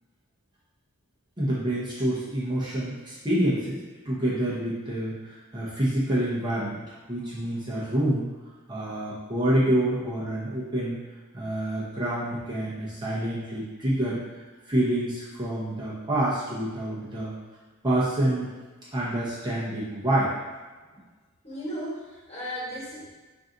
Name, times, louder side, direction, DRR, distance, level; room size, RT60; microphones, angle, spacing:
voice 1, 1.4-3.8 4.0-6.8 7.1-8.3 8.7-11.0 11.3-14.2 14.7-17.3 17.8-18.5 18.9-20.4, right 1 dB, 20° right, -8 dB, 0.8 m, -27 dB
voice 2, 21.4-23.1, equal, 30° left, -7 dB, 1.5 m, -35 dB
3.9 x 2.6 x 3.8 m, 1.3 s
head